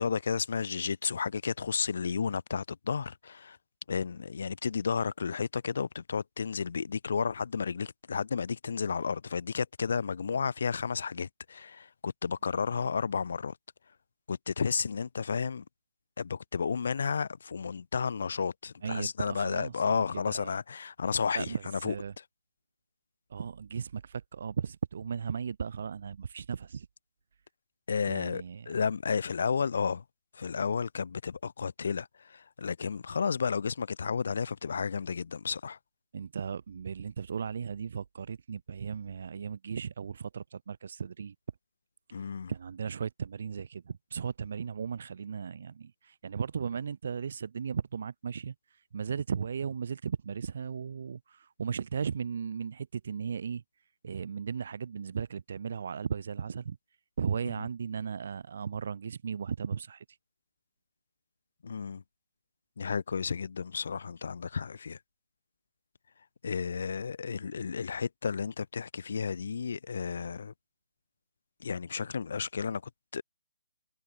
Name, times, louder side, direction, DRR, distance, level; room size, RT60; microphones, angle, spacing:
voice 1, 0.0-3.6 3.9-13.5 14.3-15.6 16.2-21.6 21.8-21.9 27.9-30.0 30.4-35.8 42.1-42.5 57.4-57.5 61.6-62.0 62.8-65.0 66.4-70.5 71.6-72.8 73.1-73.2, left 6 dB, 65° left, 0.5 m, -32 dB
voice 2, 18.8-20.0 20.3-20.5 21.3-22.1 23.3-26.9 28.1-28.8 36.1-41.3 42.5-48.5 48.9-53.6 54.0-56.8 57.2-60.0, right 6 dB, 55° right, 0.7 m, -36 dB
hypercardioid pair, 165°, 0 cm